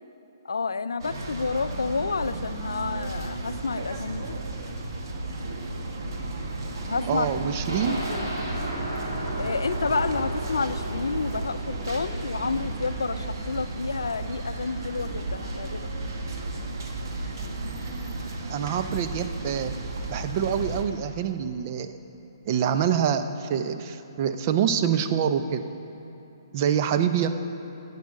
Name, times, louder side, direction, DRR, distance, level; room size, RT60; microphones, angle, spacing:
voice 1, 0.4-4.4 6.9-7.4 7.7-8.3 9.4-15.9, left 4 dB, 80° left, 13 dB, 0.5 m, -30 dB
sound 1, 1.0-20.8, right 2 dB, 60° right, 1.8 m, -34 dB
voice 2, 7.1-8.0 18.5-19.7 20.1-22.0 22.4-25.6 26.5-27.3, right 8 dB, 40° right, 9 dB, 0.7 m, -26 dB
sound 2, 7.7-15.6 15.9-16.0 16.4-16.5, right 1 dB, 90° right, 3.5 m, -35 dB
10.5 x 8.4 x 8.4 m, 2.9 s
hypercardioid pair, 135°, 2 cm